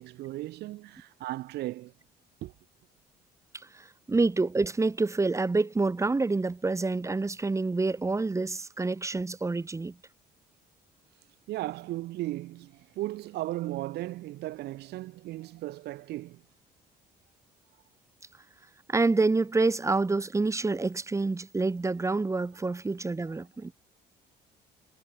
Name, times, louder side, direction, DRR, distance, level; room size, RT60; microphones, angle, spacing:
voice 1, 0.0-1.9 2.4-2.5 11.5-16.4 23.3-23.4, right 16 dB, 80° right, 3.2 m, -36 dB
voice 2, 3.7-10.0 18.9-23.7, right 3 dB, 15° right, 2.7 m, -27 dB
cardioid pair, 110°, 17 cm